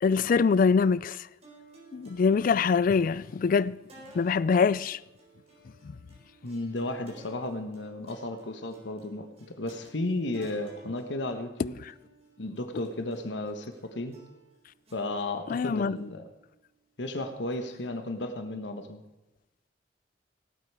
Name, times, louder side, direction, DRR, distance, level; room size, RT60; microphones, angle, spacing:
voice 1, 0.0-1.3 1.9-3.8 4.1-5.0 5.8-5.9 11.8-11.9 15.5-16.0, left 5 dB, 50° left, 0.3 m, -24 dB
sound 1, 1.4-17.9, right 2 dB, 35° right, 4.1 m, -56 dB
voice 2, 6.4-9.3 9.6-11.7 12.4-14.2 14.9-16.2 17.0-19.0, left 2 dB, 75° left, 1.2 m, -34 dB
18.0 x 8.4 x 4.8 m
head